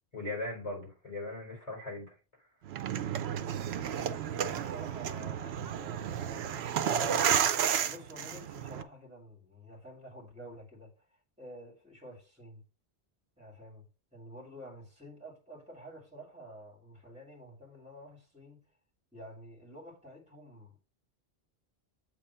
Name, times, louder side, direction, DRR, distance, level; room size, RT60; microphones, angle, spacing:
voice 1, 0.1-2.1, left 2 dB, 35° left, 4.3 m, -39 dB
sound 1, 2.7-8.8, right 8 dB, 85° right, 0.9 m, -31 dB
voice 2, 4.4-12.6 13.4-13.9 14.1-18.6 19.1-20.8, equal, 5° right, 2.1 m, -50 dB
7.7 x 3.1 x 5.5 m
omnidirectional pair, 1.1 m